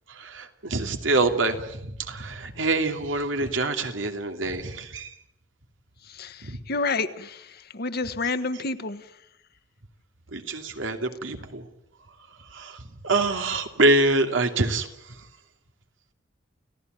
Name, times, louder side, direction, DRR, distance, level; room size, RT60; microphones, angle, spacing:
voice 1, 0.2-5.1 6.4-6.6 10.3-11.6 12.5-12.8 13.0-14.9, right 2 dB, 85° right, 6 dB, 2.7 m, -25 dB
voice 2, 6.7-7.4 7.7-9.0, left 3 dB, 55° left, 10 dB, 1.3 m, -28 dB
29.5 x 16.5 x 9.3 m, 0.83 s
head